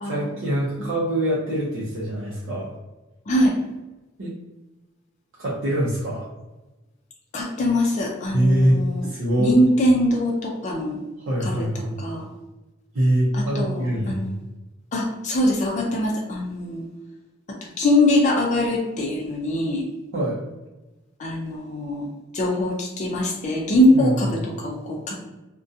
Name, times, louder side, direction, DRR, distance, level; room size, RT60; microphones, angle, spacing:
voice 1, 0.0-2.7 4.2-4.3 5.4-6.3 8.3-9.6 11.2-12.0 12.9-14.2 20.1-20.4 23.9-24.4, right 1 dB, 75° right, -6 dB, 0.6 m, -24 dB
voice 2, 3.3-3.6 7.3-9.1 9.4-11.0 11.4-11.7 12.0-12.3 13.3-14.4 14.9-16.8 17.6-19.8 21.2-22.1 22.3-25.2, left 1 dB, 35° left, -1 dB, 0.4 m, -22 dB
2.4 x 2.1 x 2.6 m, 1.1 s
head